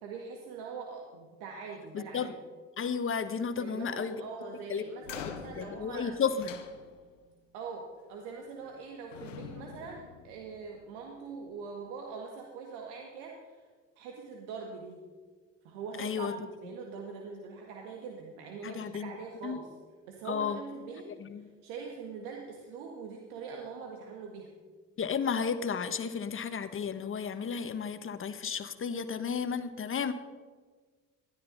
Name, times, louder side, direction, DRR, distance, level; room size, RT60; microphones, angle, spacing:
voice 1, 0.0-2.3 3.6-6.2 7.5-13.6 14.0-15.0 15.6-19.7 20.1-24.5, right 5 dB, 65° right, 1 dB, 1.9 m, -43 dB
voice 2, 1.9-2.3 2.8-4.2 4.7-4.8 5.5-6.6 16.0-16.3 18.6-19.1 19.4-19.6 20.3-20.6 21.2-21.5 25.0-30.1, left 6 dB, 35° left, 11 dB, 1.3 m, -33 dB
sound 1, 5.0-7.3 8.4-8.8 9.1-10.9, left 8 dB, 80° left, 1.2 m, -45 dB
20.0 x 13.5 x 4.1 m, 1.5 s
figure-of-eight pair, 55°, 38 cm